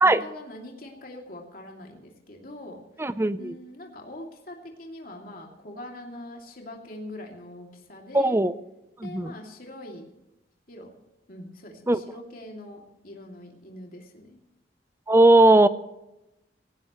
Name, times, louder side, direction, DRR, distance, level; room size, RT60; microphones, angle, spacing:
voice 1, 0.0-3.1 3.4-8.3 9.0-10.0 10.7-10.9 11.3-14.4, left 1 dB, 55° left, 0 dB, 2.7 m, -43 dB
voice 2, 3.0-3.5 8.1-8.5 9.0-9.3 11.9-12.0 15.1-15.7, right 2 dB, 15° right, 14 dB, 0.5 m, -18 dB
17.5 x 17.5 x 3.1 m, 0.92 s
head